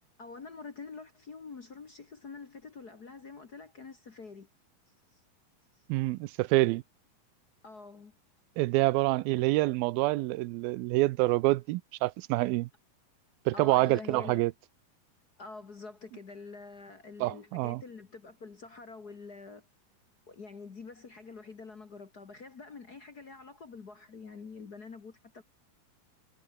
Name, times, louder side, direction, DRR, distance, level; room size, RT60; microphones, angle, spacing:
voice 1, 0.2-4.5 7.6-8.1 13.5-14.4 15.4-19.6 20.3-25.4, left 4 dB, 45° left, 1.3 m, -46 dB
voice 2, 5.9-6.8 8.6-12.7 13.5-14.5 17.2-17.8, right 20 dB, 85° right, 2.5 m, -27 dB
omnidirectional pair, 4.2 m